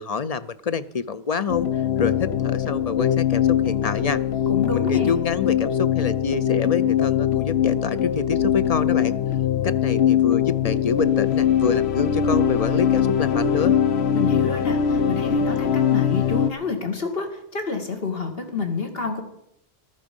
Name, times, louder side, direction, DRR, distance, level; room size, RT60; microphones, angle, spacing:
voice 1, 0.0-1.7 2.0-4.2 4.7-9.2 9.6-13.7, left 5 dB, 45° left, 15 dB, 0.6 m, -27 dB
sound 1, 1.5-16.5, left 9 dB, 90° left, 1.2 m, -21 dB
voice 2, 4.5-5.1 14.1-19.2, left 4 dB, 65° left, 4 dB, 2.5 m, -29 dB
14.5 x 13.0 x 5.3 m, 0.77 s
omnidirectional pair, 1.1 m